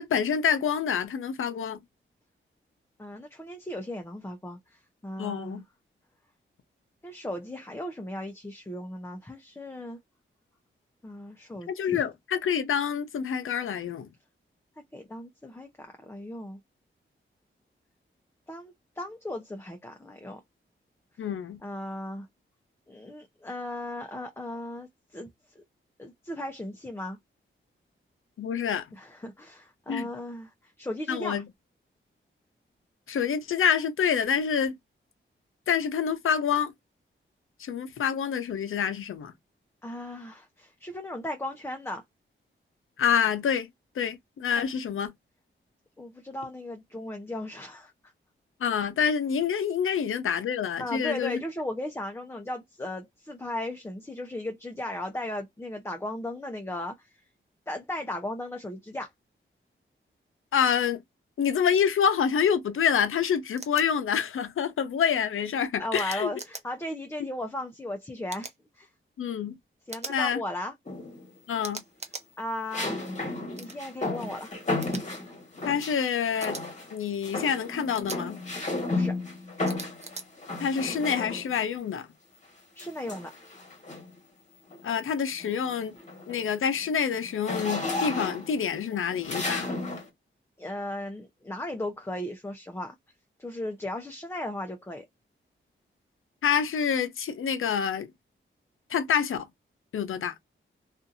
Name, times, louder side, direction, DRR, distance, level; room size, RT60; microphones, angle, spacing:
voice 1, 0.0-1.8 5.2-5.6 11.7-14.1 21.2-21.6 28.4-28.9 29.9-30.1 31.1-31.4 33.1-34.8 35.7-36.7 37.6-39.3 43.0-43.7 44.0-45.1 48.6-51.4 60.5-61.0 61.4-66.3 69.2-69.6 70.1-70.4 71.5-71.8 75.6-76.6 76.9-78.4 80.6-82.1 84.8-85.9 86.3-89.7 96.4-98.1 98.9-99.5 99.9-100.3, left 7 dB, 80° left, 0.6 m, -27 dB
voice 2, 3.0-5.6 7.0-10.0 11.0-12.1 14.9-16.6 18.5-20.4 21.6-22.3 22.9-25.3 25.6-25.7 26.0-27.2 28.9-30.5 30.8-31.4 39.8-42.0 46.0-47.9 50.8-57.1 57.7-59.1 65.8-68.9 69.9-70.7 72.4-72.9 73.6-74.6 78.9-79.2 82.8-83.3 90.6-93.0 93.4-95.1, left 1 dB, 10° left, 0.6 m, -36 dB
sound 1, 63.6-63.8 65.9-66.6 68.3-68.6 69.9-70.2 71.6-72.3 73.6-73.8 74.8-75.0 76.4-76.6 77.9-78.2 79.7-80.2, right 3 dB, 30° right, 0.8 m, -40 dB
sound 2, 70.9-71.4 72.7-76.1 76.4-77.0 77.2-81.7 82.8-84.2 84.7-85.0 85.3-90.1, left 2 dB, 35° left, 1.4 m, -33 dB
2.7 x 2.5 x 2.5 m
wide cardioid pair, 85°, 21 cm